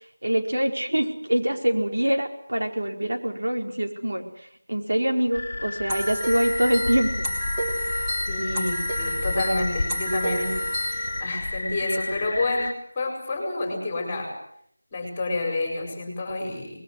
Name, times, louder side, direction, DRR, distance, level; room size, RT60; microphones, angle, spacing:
voice 1, 0.2-4.2 4.7-7.2, right 1 dB, 75° right, 2 dB, 4.9 m, -24 dB
sound 1, 5.3-12.7, left 2 dB, 40° left, 1.7 m, -31 dB
sound 2, 5.9-11.2, equal, 10° right, 3.2 m, -30 dB
voice 2, 8.3-14.3 14.9-16.8, left 2 dB, 15° left, 3 dB, 4.8 m, -29 dB
25.5 x 21.0 x 8.0 m, 0.68 s
figure-of-eight pair, 175°, 0 cm